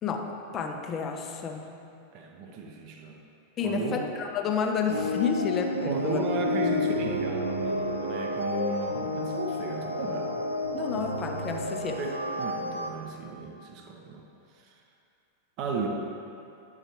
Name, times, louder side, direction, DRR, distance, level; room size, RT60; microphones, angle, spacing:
voice 1, 0.0-1.7 3.6-6.2 10.7-12.0, left 6 dB, 30° left, 4 dB, 0.7 m, -30 dB
voice 2, 2.1-3.2 3.6-4.0 5.8-10.3 12.0-14.2 14.6-14.7 15.6-15.9, right 4 dB, 40° right, 2 dB, 0.8 m, -34 dB
sound 1, 4.9-12.9, left 2 dB, 85° right, 0.5 m, -30 dB
9.8 x 6.7 x 2.9 m, 2.6 s
figure-of-eight pair, 90°, 0 cm